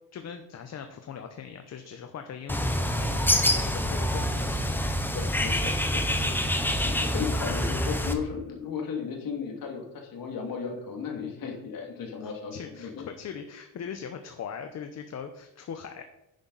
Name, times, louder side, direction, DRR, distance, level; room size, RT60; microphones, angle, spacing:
voice 1, 0.1-4.6 12.2-16.0, left 7 dB, 40° left, 6 dB, 0.8 m, -40 dB
Bird, 2.5-8.1, left 1 dB, 5° left, 0.7 m, -26 dB
voice 2, 5.1-6.6 6.8-13.1, left 6 dB, 60° left, 3 dB, 2.2 m, -35 dB
10.5 x 7.9 x 4.0 m, 0.91 s
cardioid pair, 150°, 39 cm